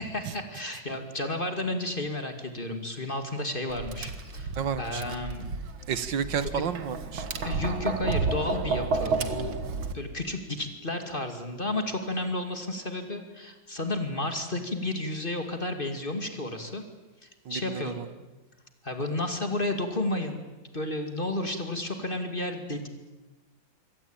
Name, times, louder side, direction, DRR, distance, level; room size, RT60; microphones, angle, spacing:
voice 1, 0.0-5.6 6.4-6.6 7.4-9.5 9.9-16.8 17.2-18.0 18.8-20.4 20.7-22.9, left 2 dB, 25° left, 6 dB, 2.5 m, -32 dB
Tap, 3.7-9.9, right 4 dB, 85° right, 2.6 m, -31 dB
voice 2, 4.6-5.2 5.9-7.3 17.5-18.1, right 7 dB, 65° right, 14 dB, 1.9 m, -31 dB
26.5 x 24.0 x 9.0 m, 1.1 s
omnidirectional pair, 2.1 m